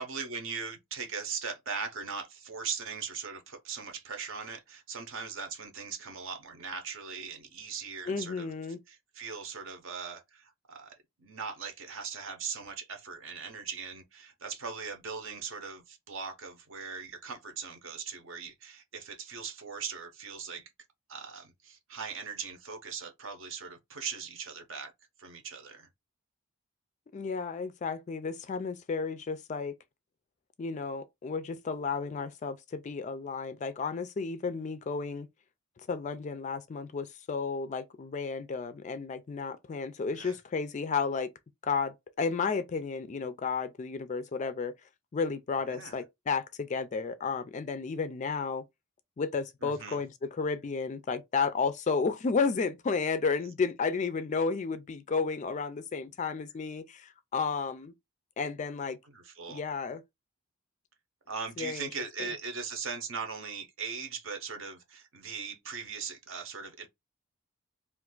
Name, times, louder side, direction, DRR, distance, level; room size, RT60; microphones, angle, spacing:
voice 1, 0.0-8.5 8.9-20.7 21.1-24.9 25.2-25.9 40.2-40.4 45.6-46.0 49.6-50.0 59.1-59.6 61.3-66.9, right 5 dB, 60° right, 0.7 m, -39 dB
voice 2, 8.1-8.8 27.1-29.8 30.6-35.3 35.9-41.3 41.6-44.7 45.1-48.6 49.2-57.9 58.4-59.0 59.5-60.0 61.6-61.9 62.2-62.3, left 5 dB, 35° left, 0.3 m, -32 dB
2.5 x 2.4 x 3.6 m
head